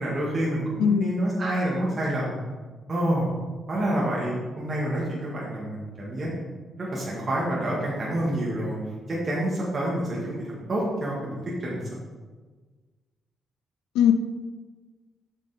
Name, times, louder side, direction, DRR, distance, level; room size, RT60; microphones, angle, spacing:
voice 1, 0.0-2.3 2.9-3.3 3.7-6.3 6.8-8.8 9.1-11.8, right 1 dB, 40° right, -6 dB, 2.3 m, -28 dB
voice 2, 0.8-1.2 13.9-14.1, left 8 dB, 70° left, 9 dB, 0.4 m, -20 dB
8.3 x 5.2 x 5.3 m, 1.4 s
hypercardioid pair, 40°, 0 cm